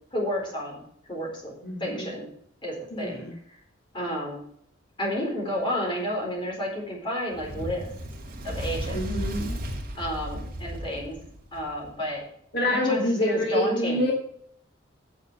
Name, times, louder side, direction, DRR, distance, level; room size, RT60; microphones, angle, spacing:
voice 1, 0.1-0.8 1.1-1.5 1.8-2.3 2.6-3.6 3.9-4.4 5.0-7.9 8.4-9.0 10.0-11.2 11.5-12.3 12.7-14.1, equal, 25° left, -2 dB, 4.4 m, -31 dB
voice 2, 1.6-2.1 2.9-3.3 8.9-9.6 12.5-14.1, left 1 dB, 55° left, -2 dB, 2.2 m, -26 dB
Fire, 7.3-11.9, equal, 45° right, 2.2 m, -34 dB
9.6 x 7.5 x 6.3 m, 0.66 s
head